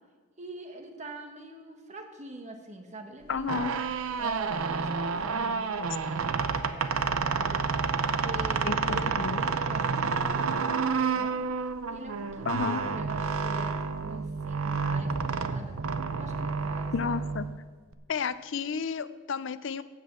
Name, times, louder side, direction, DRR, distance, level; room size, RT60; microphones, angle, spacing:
voice 1, 0.4-3.6 4.1-7.6 8.0-11.5 11.9-13.7 14.0-15.8 16.2-17.2, right 2 dB, 30° right, 4 dB, 1.3 m, -44 dB
voice 2, 3.3-3.7 8.7-9.4 12.5-12.8 16.9-17.5 18.1-19.8, left 6 dB, 60° left, 15 dB, 0.4 m, -31 dB
sound 1, 3.3-17.9, right 5 dB, 80° right, 0.6 m, -30 dB
sound 2, 4.2-10.2, equal, 15° right, 2.8 m, -50 dB
9.1 x 7.7 x 7.7 m, 1.5 s
head